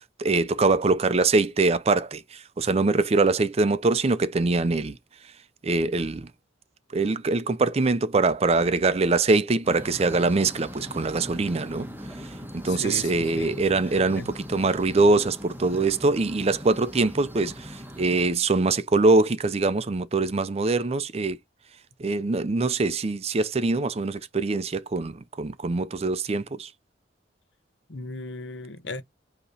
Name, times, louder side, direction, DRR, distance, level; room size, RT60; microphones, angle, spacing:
voice 1, 0.0-5.0 5.6-6.3 6.9-11.9 12.5-21.4 22.0-26.7, right 3 dB, 35° right, 0.5 m, -23 dB
sound 1, 9.6-18.3, equal, 10° right, 1.1 m, -40 dB
voice 2, 12.7-13.6 14.2-14.3 27.9-29.0, left 2 dB, 75° left, 0.9 m, -36 dB
8.3 x 2.9 x 4.0 m
head